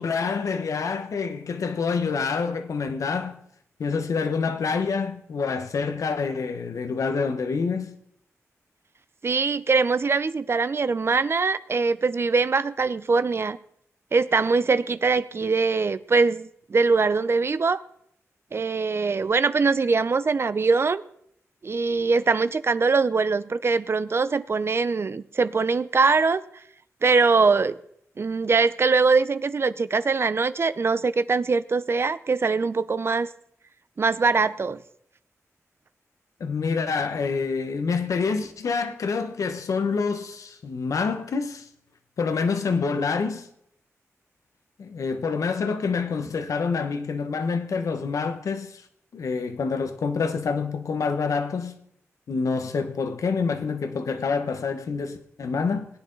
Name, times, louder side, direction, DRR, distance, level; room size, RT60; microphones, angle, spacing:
voice 1, 0.0-3.4 3.8-7.9 36.4-41.7 42.2-43.5 44.8-48.8 49.1-51.7 52.3-55.9, left 5 dB, 90° left, 1.2 m, -27 dB
voice 2, 9.2-13.6 14.1-17.8 18.5-21.0 21.6-26.4 27.0-27.8 28.2-33.3 34.0-34.8, right 4 dB, 50° right, 0.6 m, -22 dB
20.0 x 10.0 x 4.0 m
wide cardioid pair, 90°, 5 cm